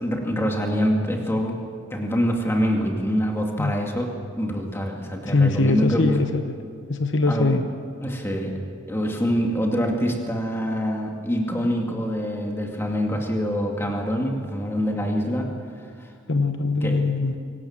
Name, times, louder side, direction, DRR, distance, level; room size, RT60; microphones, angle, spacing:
voice 1, 0.0-1.6 1.9-4.1 4.4-6.2 7.3-7.5 8.0-8.5 8.9-15.5 16.0-16.1 16.8-17.0, equal, 10° left, 1 dB, 2.3 m, -25 dB
voice 2, 5.3-6.5 6.9-7.6 16.3-17.4, left 3 dB, 65° left, 7 dB, 1.0 m, -22 dB
25.0 x 18.0 x 7.4 m, 2.3 s
head